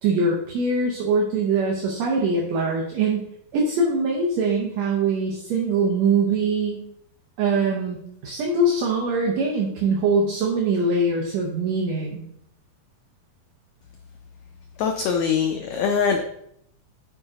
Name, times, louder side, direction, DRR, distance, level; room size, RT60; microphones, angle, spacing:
voice 1, 0.0-3.3 3.5-6.9 7.4-12.2, right 3 dB, 65° right, -1 dB, 1.9 m, -22 dB
voice 2, 14.8-16.2, left 6 dB, 80° left, 4 dB, 1.6 m, -22 dB
9.1 x 3.7 x 4.9 m, 0.73 s
omnidirectional pair, 4.0 m